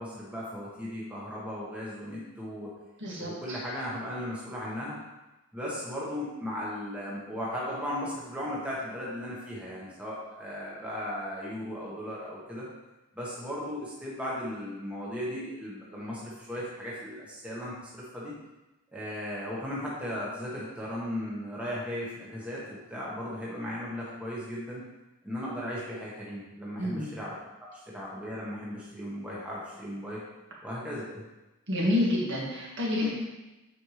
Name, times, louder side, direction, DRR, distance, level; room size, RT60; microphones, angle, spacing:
voice 1, 0.0-2.7 3.2-5.0 5.5-12.7 13.1-18.3 18.9-24.8 25.2-27.3 27.6-27.7 27.9-30.2 30.6-31.2, equal, 5° right, -7 dB, 1.2 m, -36 dB
voice 2, 3.0-3.6 26.8-27.1 31.7-33.1, left 1 dB, 55° right, -4 dB, 1.8 m, -28 dB
8.0 x 5.3 x 3.2 m, 1.0 s
head